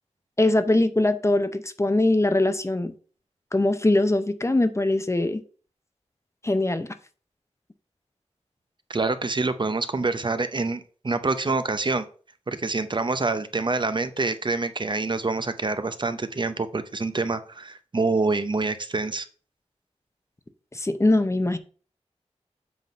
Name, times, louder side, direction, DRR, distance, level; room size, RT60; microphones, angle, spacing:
voice 1, 0.4-2.9 3.5-5.4 6.4-6.9 20.7-21.6, left 2 dB, 25° left, 0.7 m, -22 dB
voice 2, 8.9-12.0 12.5-19.3, right 3 dB, 40° right, 0.7 m, -26 dB
7.7 x 3.7 x 5.3 m
wide cardioid pair, 75°, 12 cm